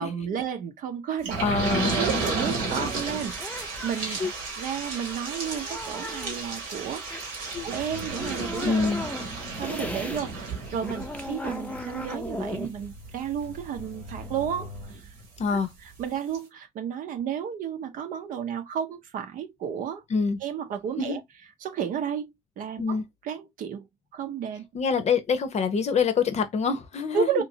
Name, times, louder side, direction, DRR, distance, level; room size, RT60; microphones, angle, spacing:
voice 1, 0.0-1.4 2.0-7.4 7.6-8.9 9.6-15.0 16.0-20.0 20.4-21.2 21.6-22.3 22.6-23.0 23.2-23.9 24.1-24.7 27.1-27.4, right 8 dB, 60° right, 0.6 m, -32 dB
sound 1, 1.2-15.6 16.0-16.1 16.3-16.4, right 3 dB, 80° right, 1.1 m, -33 dB
voice 2, 1.4-1.9 2.8-2.9 4.0-4.3 7.5-7.7 8.6-9.0 15.4-15.7 20.1-20.4 21.0-21.2 22.8-23.0 24.7-27.4, left 5 dB, 45° left, 0.7 m, -26 dB
sound 2, 2.7-10.2 10.5-14.3, left 1 dB, 10° left, 0.6 m, -38 dB
2.8 x 2.5 x 2.7 m
hypercardioid pair, 45°, 15 cm